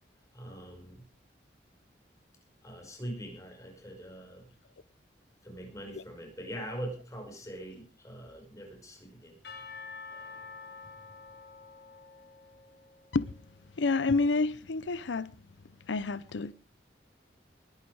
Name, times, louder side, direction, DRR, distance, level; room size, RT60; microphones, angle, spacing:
voice 1, 0.3-1.1 2.6-4.5 5.4-9.4, right 1 dB, 20° left, 5.5 m, -42 dB
Percussion / Church bell, 9.4-13.4, left 4 dB, 65° left, 6.6 m, -47 dB
voice 2, 13.8-15.3 15.9-16.5, left 3 dB, 85° left, 0.6 m, -28 dB
20.5 x 11.5 x 4.8 m
head